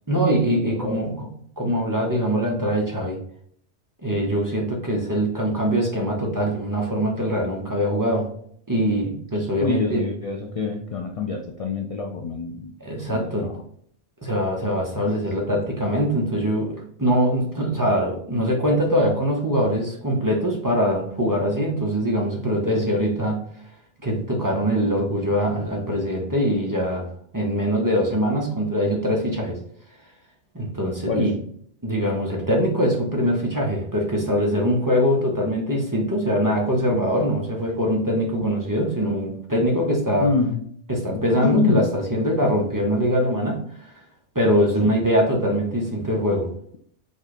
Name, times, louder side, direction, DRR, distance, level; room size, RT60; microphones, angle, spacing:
voice 1, 0.1-1.3 1.6-3.2 4.0-8.3 8.7-10.0 12.8-13.5 14.2-23.4 24.0-27.1 27.3-29.6 30.5-31.3 31.8-40.3 40.9-43.9 44.3-46.5, equal, 20° right, -1 dB, 0.8 m, -23 dB
voice 2, 0.6-1.1 9.6-12.7 13.1-13.6 15.0-15.1 31.1-31.3 40.2-40.6 41.4-41.9 44.8-45.0, left 5 dB, 65° left, 2 dB, 0.3 m, -26 dB
5.3 x 2.4 x 4.2 m, 0.63 s
omnidirectional pair, 1.2 m